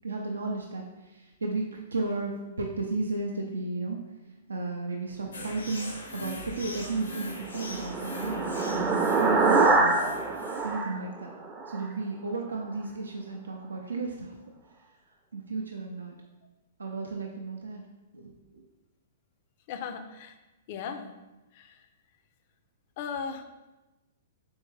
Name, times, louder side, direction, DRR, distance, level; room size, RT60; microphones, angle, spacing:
voice 1, 0.0-4.0 4.5-10.0 10.6-11.3 11.7-14.4 15.3-16.2 16.8-17.8 18.1-18.6, right 3 dB, 90° right, 1 dB, 0.4 m, -34 dB
sound 1, 5.3-10.8, left 1 dB, 85° left, 0.7 m, -42 dB
sound 2, 7.0-11.8, right 3 dB, 20° right, 0.4 m, -25 dB
voice 2, 19.7-20.3 20.7-21.1 21.6-21.7 23.0-23.5, left 6 dB, 50° left, 8 dB, 0.4 m, -36 dB
3.5 x 3.5 x 3.2 m, 1.1 s
hypercardioid pair, 120°, 0 cm